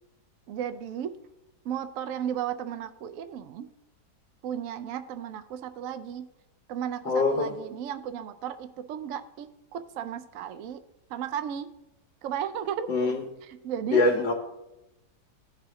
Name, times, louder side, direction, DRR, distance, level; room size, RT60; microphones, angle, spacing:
voice 1, 0.5-1.1 1.6-3.7 4.4-6.3 6.7-10.8 11.1-11.7 12.2-12.9 13.5-14.1, right 9 dB, 75° right, 10 dB, 0.7 m, -34 dB
voice 2, 7.0-7.5 12.9-13.2 13.9-14.3, left 3 dB, 80° left, 1 dB, 1.6 m, -23 dB
15.5 x 5.5 x 3.1 m, 0.95 s
omnidirectional pair, 1.9 m